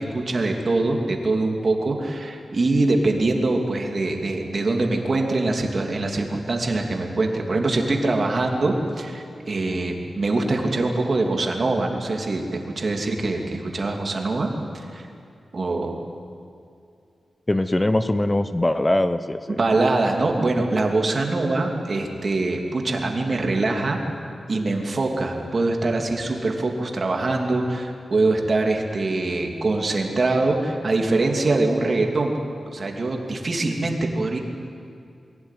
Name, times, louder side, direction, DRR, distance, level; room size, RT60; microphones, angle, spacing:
voice 1, 0.0-15.1 15.5-16.0 19.5-24.0 24.5-32.4 32.7-34.4, right 2 dB, 50° right, 2 dB, 2.8 m, -23 dB
voice 2, 17.5-19.6, left 1 dB, 15° left, 11 dB, 0.7 m, -22 dB
23.0 x 17.0 x 9.3 m, 2.4 s
wide cardioid pair, 105°, 0 cm